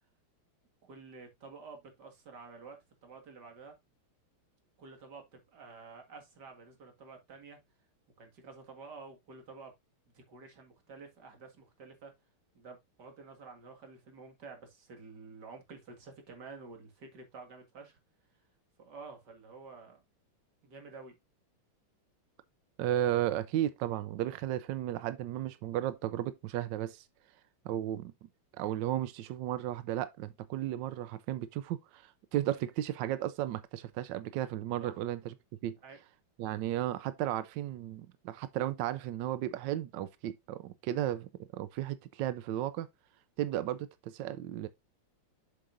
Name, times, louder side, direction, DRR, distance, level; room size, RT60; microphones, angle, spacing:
voice 1, 0.8-3.7 4.8-7.6 8.2-9.7 10.1-12.1 12.5-18.0 18.8-20.0 20.6-21.2 34.8-35.0 35.8-36.0, right 4 dB, 50° right, 2.4 m, -50 dB
voice 2, 22.8-27.1 27.6-28.1 28.5-35.3 35.6-35.8 36.4-42.9 43.4-44.7, right 12 dB, 75° right, 1.0 m, -34 dB
7.3 x 6.8 x 2.5 m
omnidirectional pair, 2.4 m